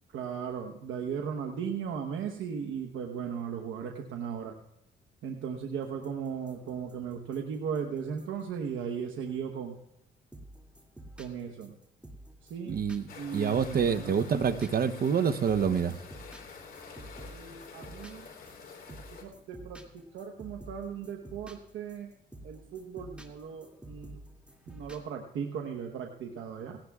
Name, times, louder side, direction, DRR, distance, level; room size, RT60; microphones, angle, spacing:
voice 1, 0.1-4.5 5.2-9.8 11.2-11.7 12.5-12.8 13.2-14.1 17.3-18.3 18.9-22.1 22.4-24.2 24.7-26.8, right 7 dB, 80° right, 3 dB, 1.1 m, -37 dB
sound 1, 5.8-9.7 10.3-25.0, right 1 dB, 5° right, 2.4 m, -51 dB
voice 2, 12.7-13.0 13.3-16.0, right 7 dB, 50° right, 13 dB, 0.8 m, -27 dB
sound 2, 13.1-19.2, left 5 dB, 50° left, 3.7 m, -48 dB
18.0 x 17.5 x 2.4 m, 0.89 s
cardioid pair, 90°, 20 cm